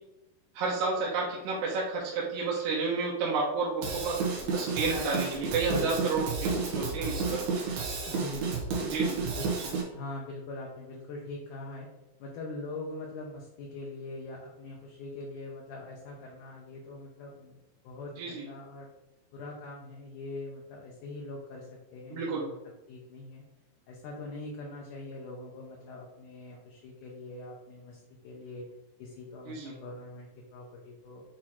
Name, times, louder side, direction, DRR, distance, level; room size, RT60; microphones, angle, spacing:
voice 1, 0.5-4.2 4.5-6.3 6.7-7.4 8.9-9.2 18.2-18.5 22.1-22.5 29.5-29.7, right 4 dB, 65° right, -6 dB, 2.1 m, -30 dB
Drum kit / Drum, 3.8-9.8, right 4 dB, 85° right, 3.2 m, -31 dB
voice 2, 8.1-8.7 9.4-11.9 12.2-17.6 17.8-18.9 19.3-22.6 22.9-23.4 23.9-28.7 29.0-31.2, left 2 dB, 70° left, -2 dB, 2.0 m, -42 dB
8.5 x 2.9 x 4.4 m, 0.94 s
omnidirectional pair, 4.4 m